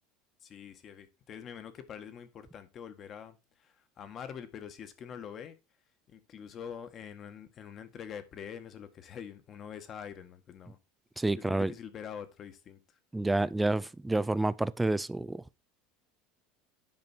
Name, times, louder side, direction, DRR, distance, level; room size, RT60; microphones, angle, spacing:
voice 1, 0.4-5.6 6.1-10.8 11.4-13.0, left 8 dB, 40° left, 1.7 m, -45 dB
voice 2, 11.2-11.7 13.1-15.4, right 2 dB, 10° right, 0.5 m, -29 dB
10.5 x 5.2 x 4.4 m
hypercardioid pair, 95°, 0 cm